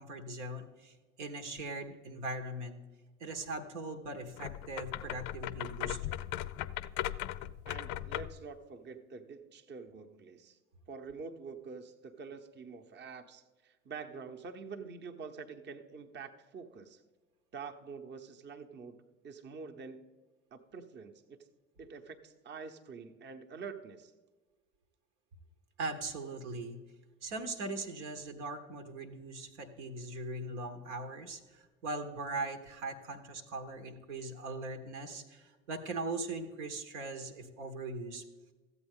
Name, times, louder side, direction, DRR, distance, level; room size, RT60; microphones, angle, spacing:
voice 1, 0.0-2.8 3.2-6.1 25.8-26.8 27.2-38.2, right 2 dB, 75° right, 5 dB, 1.0 m, -40 dB
sound 1, 4.3-8.4, left 13 dB, 60° left, 0.5 m, -38 dB
voice 2, 7.7-10.6 10.9-17.0 17.5-19.0 19.2-20.0 20.5-21.4 21.8-24.1, right 5 dB, 30° right, 6 dB, 0.8 m, -46 dB
13.5 x 8.1 x 3.6 m, 1.3 s
hypercardioid pair, 65°, 35 cm